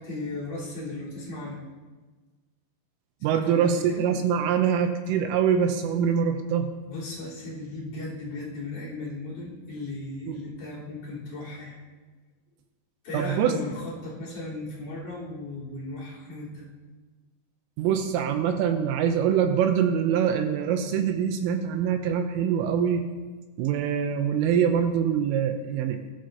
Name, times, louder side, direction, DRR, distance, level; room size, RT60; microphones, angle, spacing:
voice 1, 0.0-1.6 3.3-4.0 6.9-11.8 13.0-16.7, left 2 dB, 40° left, -7 dB, 5.0 m, -36 dB
voice 2, 3.2-6.7 10.3-10.4 13.1-13.5 17.8-23.0 23.6-26.0, right 8 dB, 80° right, 6 dB, 3.2 m, -24 dB
19.5 x 13.0 x 2.9 m, 1.3 s
omnidirectional pair, 6.0 m